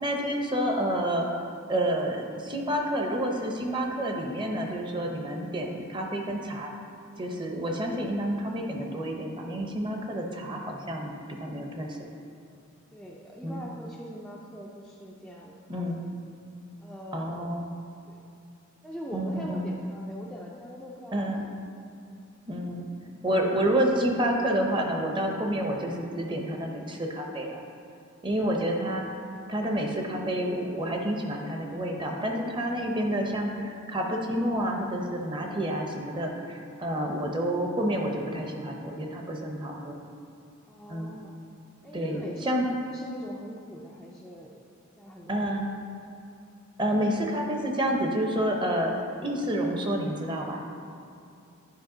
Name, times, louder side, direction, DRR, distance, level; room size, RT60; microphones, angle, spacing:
voice 1, 0.0-1.3 1.7-6.7 7.2-12.1 13.4-13.6 15.7-16.1 17.1-17.7 19.1-19.6 21.1-21.4 22.5-22.9 23.2-27.6 28.2-29.0 29.5-40.0 40.9-41.1 41.9-42.7 45.3-45.7 46.8-50.6, right 1 dB, 25° right, 2 dB, 0.7 m, -29 dB
voice 2, 12.9-16.1 16.8-17.5 18.1-18.2 18.8-21.5 22.1-22.2 26.6-26.9 28.4-28.8 33.4-33.7 40.7-41.3 41.8-44.6 45.0-45.4, equal, 5° left, -4 dB, 0.4 m, -43 dB
10.5 x 5.1 x 3.9 m, 2.4 s
head